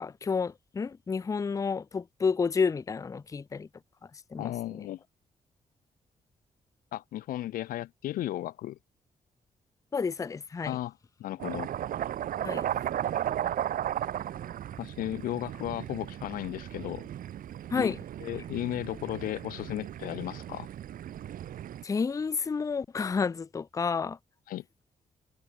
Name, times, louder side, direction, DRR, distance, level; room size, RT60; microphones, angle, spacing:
voice 1, 0.0-3.7 4.3-4.5 9.9-10.8 12.4-12.7 17.7-18.0 21.8-24.2, left 5 dB, 25° left, 0.4 m, -30 dB
voice 2, 4.4-5.0 6.9-8.8 10.6-11.7 14.8-17.1 17.8-17.9 18.2-20.7 24.5-24.6, left 14 dB, 90° left, 0.6 m, -35 dB
sound 1, 11.4-21.8, right 11 dB, 75° right, 1.0 m, -35 dB
cardioid pair, 75°, 14 cm